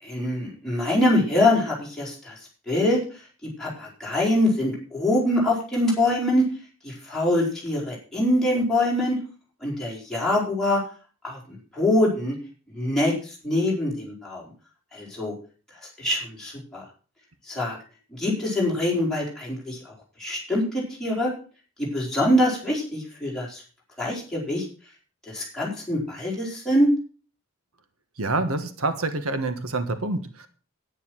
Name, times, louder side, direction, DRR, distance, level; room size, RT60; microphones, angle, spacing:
voice 1, 0.0-2.3 2.7-3.0 3.6-6.5 6.8-9.2 9.6-10.8 11.2-11.4 11.7-12.3 12.7-14.4 14.9-15.3 16.0-16.8 17.5-17.8 18.1-19.9 20.2-21.3 21.8-23.6 24.0-24.6 25.3-26.9, left 1 dB, ahead, -6 dB, 4.6 m, -24 dB
voice 2, 28.2-30.5, right 2 dB, 85° right, 10 dB, 1.4 m, -27 dB
10.0 x 9.8 x 6.3 m, 0.38 s
head